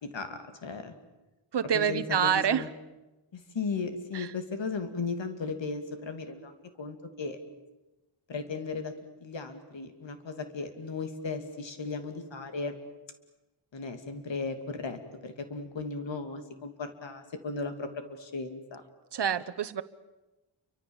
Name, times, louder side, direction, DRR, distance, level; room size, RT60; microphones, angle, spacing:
voice 1, 0.0-0.9 1.7-2.7 3.3-7.4 8.3-8.9 9.2-12.8 13.7-17.9 18.2-18.8, left 4 dB, 65° left, 7 dB, 2.8 m, -36 dB
voice 2, 1.5-2.6 4.1-4.3 19.1-19.8, right 8 dB, 60° right, 13 dB, 1.1 m, -27 dB
29.5 x 24.5 x 7.3 m, 1.1 s
wide cardioid pair, 170°, 47 cm